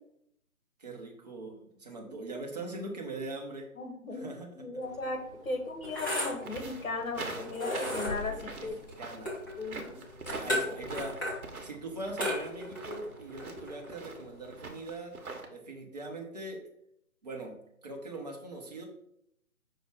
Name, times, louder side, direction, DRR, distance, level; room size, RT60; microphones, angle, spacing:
voice 1, 0.8-3.7 4.1-4.5 8.3-8.7 9.0-9.4 10.4-11.2 11.6-15.2 15.5-16.6 17.2-17.6 17.8-18.8, right 2 dB, 30° right, 0 dB, 0.7 m, -41 dB
voice 2, 3.8-8.8 9.6-10.0 10.5-10.9, left 3 dB, 65° left, 3 dB, 1.2 m, -37 dB
sound 1, 4.8-14.6, left 1 dB, 15° left, 0.7 m, -37 dB
sound 2, 6.4-15.5, right 3 dB, 75° right, 1.0 m, -43 dB
5.4 x 2.1 x 4.7 m, 0.76 s
figure-of-eight pair, 150°, 44 cm